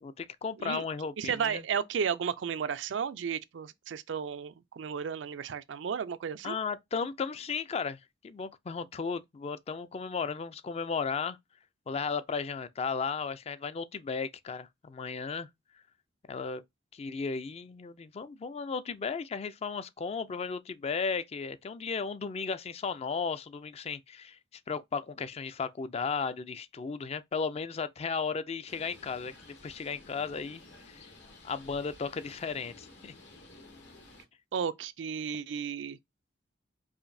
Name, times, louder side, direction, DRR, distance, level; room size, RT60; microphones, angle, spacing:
voice 1, 0.0-1.6 6.4-8.0 8.2-11.4 11.9-15.5 16.3-16.6 16.9-24.4 24.7-30.6 30.9-31.0 31.4-33.1, left 5 dB, 35° left, 0.4 m, -35 dB
voice 2, 1.2-6.6 34.5-36.0, right 7 dB, 90° right, 0.4 m, -33 dB
Bird, 28.7-34.2, left 2 dB, 70° left, 1.5 m, -53 dB
4.8 x 2.6 x 2.6 m
head